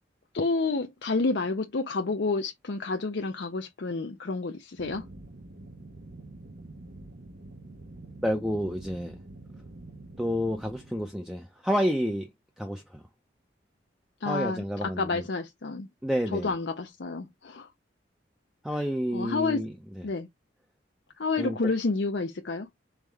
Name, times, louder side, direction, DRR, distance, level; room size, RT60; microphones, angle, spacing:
voice 1, 0.3-5.1 14.2-15.9 16.3-17.7 19.1-19.7 20.0-20.3 21.2-22.7, left 3 dB, 70° left, 0.6 m, -29 dB
sound 1, 4.8-11.1, right 2 dB, 65° right, 0.9 m, -46 dB
voice 2, 8.2-9.2 10.2-12.3 12.6-13.0 14.3-15.2 16.0-16.5 18.6-19.7 21.4-21.6, equal, ahead, 0.5 m, -29 dB
4.2 x 3.6 x 3.4 m
head